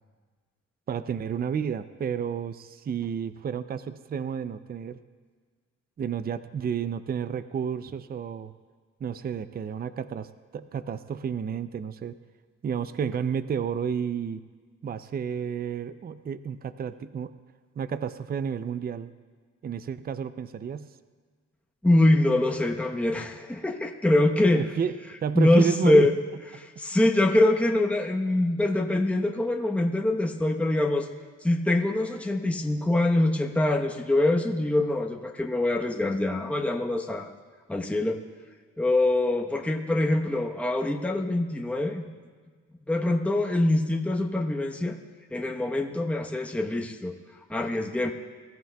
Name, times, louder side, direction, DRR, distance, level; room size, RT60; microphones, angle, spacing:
voice 1, 0.9-5.0 6.0-8.5 9.0-12.2 12.6-14.4 14.8-17.3 17.8-19.1 19.6-20.9 24.6-24.9 25.2-26.1 26.5-26.6, right 7 dB, 30° right, 13 dB, 0.5 m, -31 dB
voice 2, 21.8-24.6 25.3-26.1 26.5-31.1 31.4-37.3 37.7-38.2 38.8-42.0 42.8-45.0 45.3-47.1 47.5-48.1, left 1 dB, 5° left, 1 dB, 1.0 m, -24 dB
23.0 x 14.0 x 2.3 m, 1.5 s
cardioid pair, 90°, 30 cm